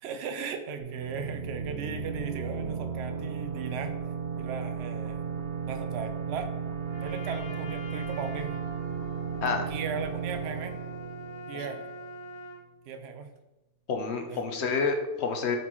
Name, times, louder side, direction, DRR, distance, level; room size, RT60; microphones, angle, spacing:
voice 1, 0.0-3.9 4.4-5.2 5.6-6.5 7.0-8.6 9.7-10.7 11.5-11.8 12.9-13.3 14.3-14.4, right 6 dB, 75° right, 8 dB, 0.6 m, -37 dB
sound 1, 0.8-12.3, right 6 dB, 50° right, 0.9 m, -35 dB
Trumpet, 6.8-12.6, equal, 20° left, 1.0 m, -44 dB
voice 2, 13.9-15.6, left 4 dB, 55° left, 4 dB, 0.8 m, -28 dB
7.2 x 4.3 x 3.0 m, 1.0 s
omnidirectional pair, 1.8 m